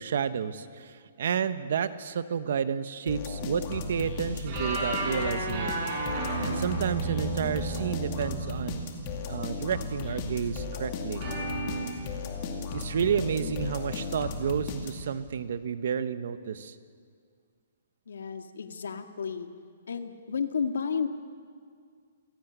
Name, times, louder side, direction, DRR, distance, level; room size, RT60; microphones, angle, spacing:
voice 1, 0.0-5.7 6.4-8.8 9.2-11.2 12.7-16.7, right 7 dB, 50° right, 12 dB, 1.1 m, -31 dB
sound 1, 3.1-15.3, left 4 dB, 25° left, 2.4 m, -35 dB
sound 2, 4.5-9.7 11.2-11.9, right 3 dB, 25° right, 7.5 m, -33 dB
voice 2, 18.1-19.5 19.9-21.1, left 6 dB, 80° left, 7 dB, 1.9 m, -32 dB
27.5 x 17.0 x 8.1 m, 2.1 s
hypercardioid pair, 175°, 0 cm